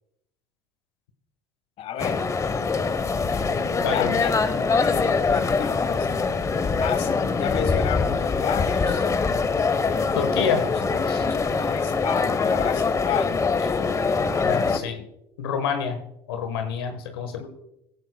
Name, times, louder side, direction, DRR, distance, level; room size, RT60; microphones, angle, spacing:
voice 1, 1.8-2.2 3.2-4.4 4.8-6.2 6.8-9.1 10.4-10.8 11.1-13.3 17.3-17.5, left 9 dB, 55° left, 10 dB, 1.4 m, -32 dB
sound 1, 2.0-14.8, left 4 dB, 25° left, 1.0 m, -23 dB
voice 2, 10.1-10.6 11.1-11.3 14.4-15.0 15.4-16.0 16.3-17.5, left 6 dB, 85° left, 7 dB, 1.3 m, -27 dB
17.0 x 14.5 x 2.3 m, 0.82 s
hypercardioid pair, 80°, 12 cm